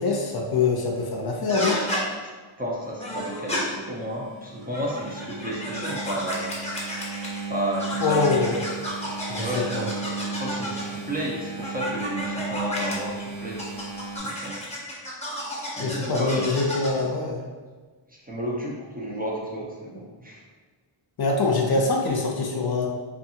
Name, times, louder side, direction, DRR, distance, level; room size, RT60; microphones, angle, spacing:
voice 1, 0.0-1.8 8.0-8.6 9.3-9.9 15.8-17.4 21.2-22.9, left 3 dB, 50° left, 0 dB, 0.5 m, -24 dB
sound 1, 1.5-2.0 3.0-3.6 4.6-7.4 7.7-11.0 11.6-12.9 13.6-17.0, equal, 15° left, 0.8 m, -32 dB
voice 2, 2.6-6.6 7.5-8.2 9.3-9.9 10.4-13.7 14.2-14.6 15.8-16.7 18.1-20.4, equal, 20° right, -4 dB, 0.5 m, -32 dB
Engine, 2.8-14.2, right 4 dB, 60° right, 1.0 m, -36 dB
2.6 x 2.4 x 2.7 m, 1.4 s
cardioid pair, 70°, 49 cm